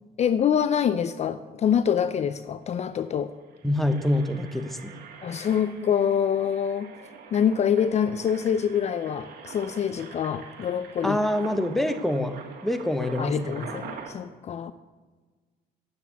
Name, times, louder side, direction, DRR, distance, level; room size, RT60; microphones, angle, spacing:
voice 1, 0.2-3.3 5.2-6.9 7.3-11.2 13.2-14.7, left 8 dB, 40° left, 12 dB, 0.5 m, -25 dB
Engine, 2.4-2.5 2.7-2.9 3.4-14.1, right 6 dB, 65° right, 2.1 m, -45 dB
voice 2, 3.6-5.0 11.0-13.8, left 1 dB, ahead, 8 dB, 0.9 m, -26 dB
9.6 x 7.4 x 8.3 m, 1.3 s
cardioid pair, 110°, 17 cm